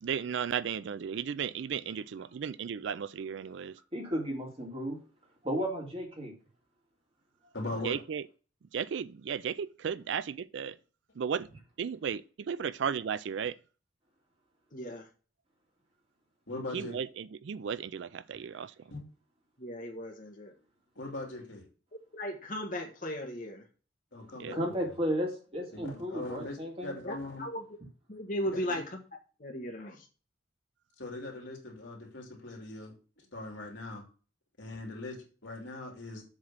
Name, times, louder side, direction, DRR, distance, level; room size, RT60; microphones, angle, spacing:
voice 1, 0.0-3.8 7.8-8.2 8.7-10.8 11.2-11.5 11.8-13.6 16.7-18.7 24.4-24.6, right 7 dB, 65° right, 0.4 m, -35 dB
voice 2, 3.9-5.0 5.4-6.3 24.5-27.0, equal, 30° right, 2.2 m, -33 dB
voice 3, 7.5-8.0 16.5-17.0 18.9-19.0 20.9-21.6 24.1-25.0 25.7-27.5 28.4-28.8 31.0-34.0 34.6-36.2, left 2 dB, 65° left, 2.8 m, -41 dB
voice 4, 14.7-15.1 19.6-20.5 22.1-23.6 27.0-27.1 27.4-27.6 28.1-28.8 29.4-30.0, equal, 40° left, 1.5 m, -36 dB
7.4 x 3.8 x 6.0 m
head